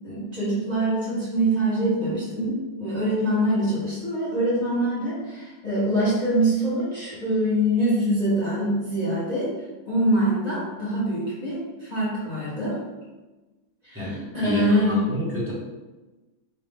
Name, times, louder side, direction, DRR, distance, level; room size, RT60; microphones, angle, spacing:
voice 1, 0.0-9.5 9.9-12.8 13.8-15.0, right 1 dB, 25° left, -9 dB, 1.1 m, -24 dB
voice 2, 13.9-15.5, left 2 dB, 10° right, -8 dB, 0.6 m, -28 dB
4.7 x 2.4 x 3.5 m, 1.1 s
omnidirectional pair, 2.4 m